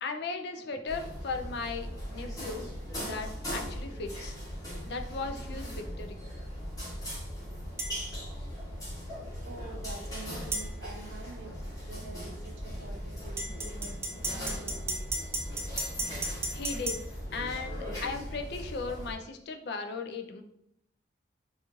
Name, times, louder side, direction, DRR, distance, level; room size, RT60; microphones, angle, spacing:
voice 1, 0.0-2.7 3.0-4.3 4.9-6.2 16.5-17.0 17.3-20.4, left 4 dB, 60° left, 5 dB, 0.4 m, -37 dB
sound 1, 0.9-19.1, equal, 20° left, 1.1 m, -39 dB
sound 2, 7.8-7.9 10.5-10.7 13.4-17.0, right 2 dB, 15° right, 0.3 m, -34 dB
voice 2, 9.2-15.2, right 2 dB, 65° right, 3 dB, 0.6 m, -47 dB
3.9 x 2.4 x 3.0 m, 0.75 s
head